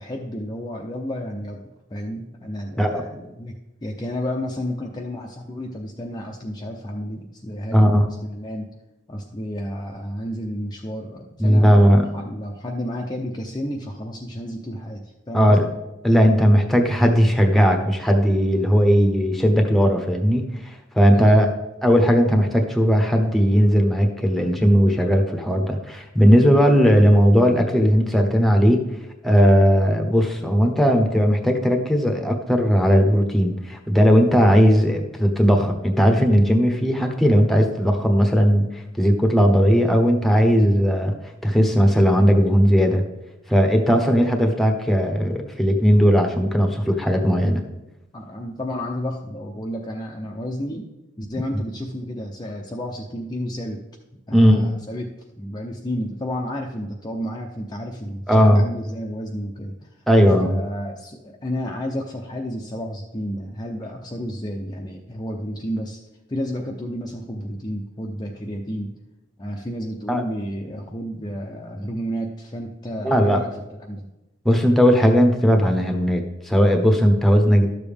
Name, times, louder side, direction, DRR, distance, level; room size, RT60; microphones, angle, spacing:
voice 1, 0.0-8.7 9.1-15.7 21.1-21.6 25.4-25.6 48.1-50.9 51.2-53.8 54.3-55.1 55.4-60.0 60.4-66.0 66.3-68.9 69.4-73.5 73.8-74.1, equal, 20° left, 0 dB, 0.6 m, -31 dB
voice 2, 7.7-8.0 11.4-12.0 15.3-15.6 16.0-21.5 21.8-28.8 29.2-38.7 39.0-41.1 41.4-43.0 43.5-47.6 54.3-54.6 58.3-58.6 60.1-60.5 70.1-70.2 73.0-73.4 74.4-77.7, equal, ahead, 3 dB, 1.0 m, -17 dB
12.0 x 7.0 x 3.5 m, 0.96 s
head